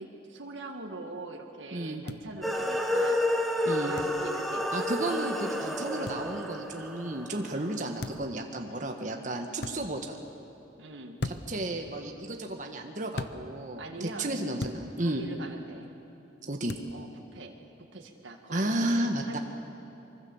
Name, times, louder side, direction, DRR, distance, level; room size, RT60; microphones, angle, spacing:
voice 1, 0.0-3.2 3.7-4.7 7.5-7.7 8.7-9.0 10.8-11.2 13.8-14.4 15.0-15.9 16.9-19.4, right 2 dB, 85° right, 1 dB, 1.9 m, -43 dB
voice 2, 1.7-2.0 3.6-3.9 4.7-10.2 11.5-15.2 16.4-16.8 18.5-19.4, right 1 dB, 40° right, 2 dB, 1.5 m, -32 dB
sound 1, 2.1-2.2 4.0-4.2 6.1-6.2 8.0-8.3 9.6-9.8 11.2-11.6 13.1-13.4 14.6-14.8 16.7-16.9, left 2 dB, 60° left, 0.9 m, -36 dB
sound 2, 2.4-7.9, left 1 dB, ahead, 1.6 m, -30 dB
24.5 x 24.0 x 7.2 m, 2.9 s
head